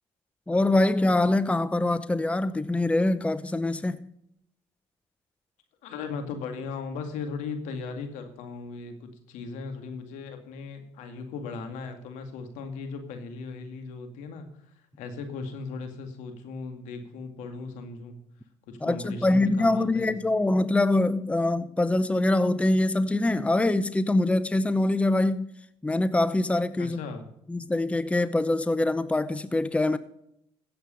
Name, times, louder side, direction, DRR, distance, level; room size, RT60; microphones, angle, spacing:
voice 1, 0.5-4.0 18.8-25.5 25.8-27.0 27.5-30.0, left 2 dB, 10° left, 0.8 m, -24 dB
voice 2, 5.8-18.2 18.7-20.1 26.7-27.2, left 4 dB, 85° left, 2.2 m, -37 dB
15.5 x 8.0 x 5.2 m
supercardioid pair, 70°, 12 cm